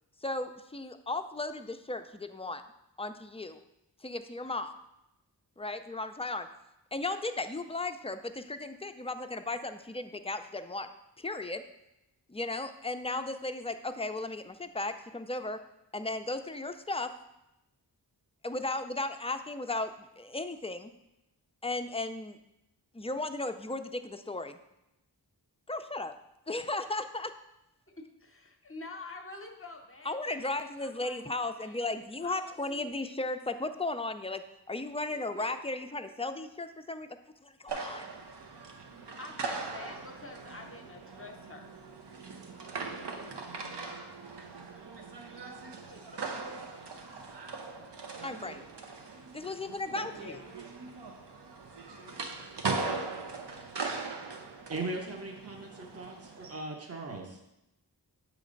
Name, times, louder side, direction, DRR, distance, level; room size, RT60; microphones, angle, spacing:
voice 1, 0.2-2.6 3.0-3.6 4.0-4.7 5.6-6.5 6.9-10.9 11.2-11.6 12.3-15.6 15.9-17.1 18.4-20.9 21.6-22.4 22.9-24.6 25.7-26.1 26.5-27.3 30.1-34.4 34.7-37.1 37.4-38.0 48.2-48.7 49.3-50.4, left 2 dB, 15° left, 8 dB, 0.3 m, -35 dB
voice 2, 27.9-31.8 32.2-33.2 35.1-35.6 39.2-41.8 42.8-44.1 45.8-46.6 47.5-48.0 50.1-50.7 52.0-52.5, left 3 dB, 30° left, 3 dB, 0.7 m, -49 dB
sound 1, 37.7-56.6, right 4 dB, 80° right, 0.8 m, -40 dB
voice 3, 54.7-57.4, right 2 dB, 35° right, 1 dB, 0.9 m, -39 dB
7.6 x 3.2 x 5.1 m, 0.88 s
wide cardioid pair, 70°, 41 cm